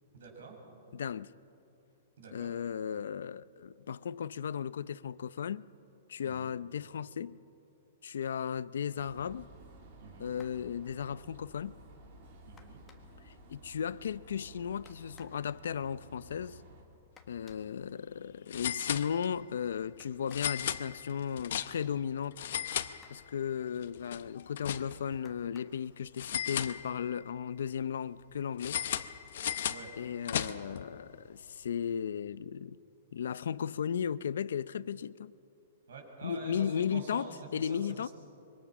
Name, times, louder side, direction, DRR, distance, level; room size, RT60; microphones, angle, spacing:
voice 1, 0.1-0.6 2.2-2.5 6.2-6.5 10.0-10.3 12.4-12.8 29.7-29.9 30.2-30.6 35.9-38.1, right 4 dB, 80° right, 6.8 m, -47 dB
voice 2, 0.9-1.3 2.3-5.6 6.1-7.4 8.0-9.5 10.2-11.8 13.2-16.6 17.3-22.4 23.1-28.8 30.0-32.8 33.1-35.3 36.2-38.1, left 8 dB, 85° left, 0.5 m, -35 dB
sound 1, 9.0-16.8, right 1 dB, 40° right, 3.1 m, -54 dB
sound 2, 10.4-10.7 12.6-13.3 14.9-15.4 17.2-17.7 20.0-20.6 22.7-23.4 25.2-25.8 26.9-27.0 27.5-27.7, left 5 dB, 10° left, 1.4 m, -60 dB
sound 3, 17.4-17.5 17.8-17.9 18.5-19.5 20.3-22.0 22.3-23.5 23.8-25.2 26.2-27.3 28.6-30.8, left 10 dB, 60° left, 0.8 m, -36 dB
26.0 x 23.5 x 6.1 m
hypercardioid pair, 175°, 0 cm